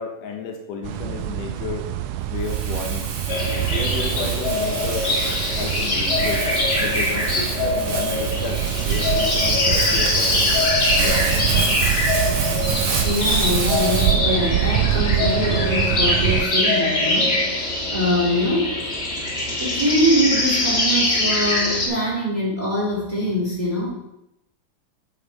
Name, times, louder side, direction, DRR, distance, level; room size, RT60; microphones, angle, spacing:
voice 1, 0.0-1.9 2.3-3.1 3.7-6.4 6.8-10.7 11.0-11.8, left 5 dB, 75° left, 2 dB, 2.7 m, -32 dB
sound 1, 0.8-16.5, right 12 dB, 80° right, 1.9 m, -25 dB
Crumpling crinkling, 2.4-14.1, right 5 dB, 60° right, 2.4 m, -29 dB
sound 2, 3.3-21.9, left 2 dB, 35° left, 1.0 m, -23 dB
voice 2, 13.0-17.6 17.9-18.8 19.6-23.9, equal, 15° right, -5 dB, 2.5 m, -23 dB
8.5 x 7.5 x 4.1 m, 0.84 s
omnidirectional pair, 3.8 m